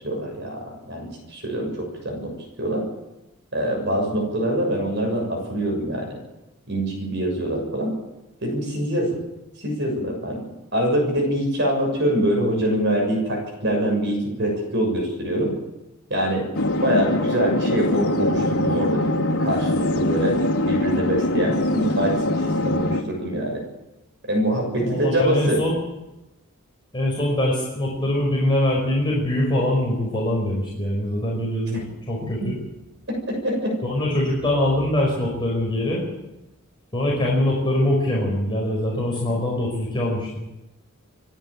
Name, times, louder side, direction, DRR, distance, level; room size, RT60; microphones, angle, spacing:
voice 1, 0.0-2.3 2.6-2.8 3.5-6.1 6.7-7.9 8.4-9.2 9.6-10.4 10.7-15.5 16.1-16.5 16.8-19.1 19.4-20.4 20.6-22.2 22.6-23.6 24.3-25.6 33.4-33.7, right 1 dB, 50° right, 1 dB, 6.8 m, -24 dB
sound 1, 16.5-23.0, left 1 dB, 85° left, 2.5 m, -23 dB
voice 2, 24.8-25.8 26.9-32.6 33.8-36.0 36.9-40.4, left 1 dB, 20° left, -4 dB, 5.3 m, -23 dB
27.5 x 11.0 x 8.8 m, 0.98 s
head